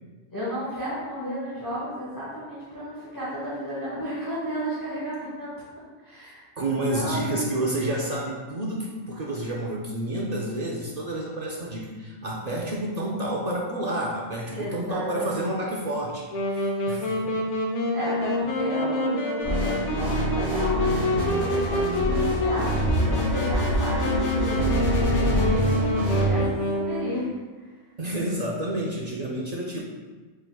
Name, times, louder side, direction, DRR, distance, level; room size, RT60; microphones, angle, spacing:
voice 1, 0.3-5.5 6.0-7.4 14.5-15.4 17.9-27.3, equal, 20° left, -9 dB, 0.9 m, -33 dB
voice 2, 6.6-16.3 16.9-17.4 28.0-29.8, right 1 dB, 60° right, -2 dB, 0.4 m, -29 dB
Wind instrument woodwind instrument, 16.3-27.2, left 2 dB, 75° left, 0.9 m, -27 dB
sound 1, 19.4-26.3, right 1 dB, 50° left, 1.4 m, -25 dB
4.4 x 3.8 x 2.2 m, 1.3 s
omnidirectional pair, 1.2 m